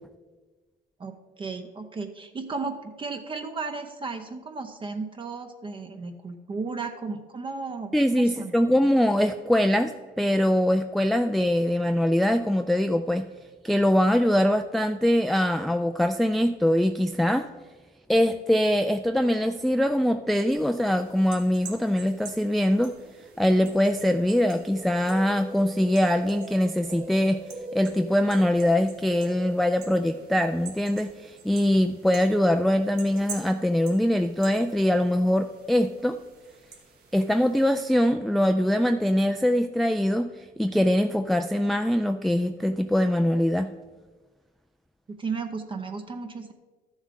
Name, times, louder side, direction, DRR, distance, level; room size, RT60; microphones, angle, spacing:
voice 1, 1.0-8.5 45.1-46.5, right 4 dB, 30° right, 6 dB, 0.7 m, -34 dB
voice 2, 7.9-13.2 13.6-17.5 18.1-22.9 23.4-27.4 27.7-36.2 37.1-40.3 40.6-43.7, equal, ahead, 7 dB, 0.3 m, -23 dB
sound 1, 20.5-37.8, right 3 dB, 65° right, 2.0 m, -43 dB
12.5 x 7.2 x 3.7 m, 1.3 s
cardioid pair, 110°, 17 cm